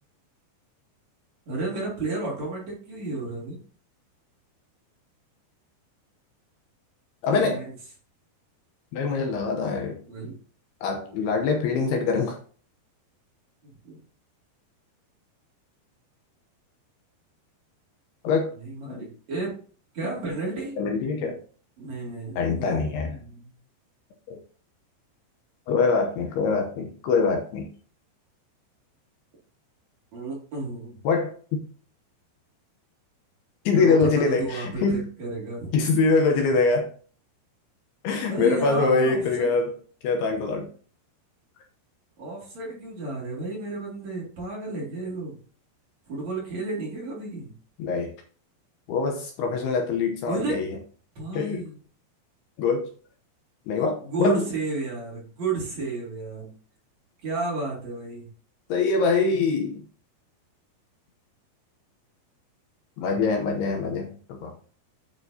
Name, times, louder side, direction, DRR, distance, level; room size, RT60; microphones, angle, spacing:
voice 1, 1.5-3.6 7.3-7.7 10.1-10.3 11.0-11.6 13.6-14.0 18.6-19.6 19.9-20.8 21.8-23.5 30.1-30.9 33.7-35.7 38.3-39.5 42.2-45.4 46.1-47.5 50.2-50.6 51.1-51.8 54.0-56.5 57.2-58.3, right 3 dB, 45° right, -4 dB, 3.2 m, -32 dB
voice 2, 7.2-7.6 8.9-10.0 10.8-12.4 18.2-18.5 18.9-19.1 20.1-20.2 20.8-21.4 22.4-23.2 24.3-24.4 25.7-27.7 31.0-31.6 33.7-35.1 35.7-36.9 38.0-39.7 40.0-40.7 47.8-48.1 48.9-50.8 51.3-51.6 52.6-52.9 53.7-54.4 58.7-59.8 63.0-64.5, left 4 dB, 75° left, 3 dB, 2.6 m, -24 dB
8.9 x 6.7 x 2.7 m, 0.42 s
omnidirectional pair, 5.2 m